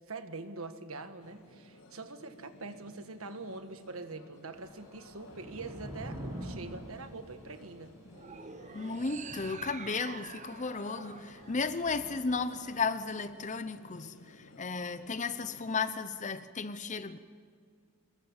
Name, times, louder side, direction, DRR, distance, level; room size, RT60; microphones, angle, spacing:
voice 1, 0.0-7.9, right 3 dB, 70° right, 1.6 m, -44 dB
sound 1, 1.2-15.8, left 2 dB, 80° left, 2.0 m, -56 dB
Thunder / Rain, 4.5-12.9, right 1 dB, 15° right, 4.9 m, -47 dB
sound 2, 8.1-12.5, right 5 dB, 35° right, 0.9 m, -48 dB
voice 2, 8.7-17.2, left 4 dB, 35° left, 0.8 m, -34 dB
25.5 x 21.5 x 7.4 m
head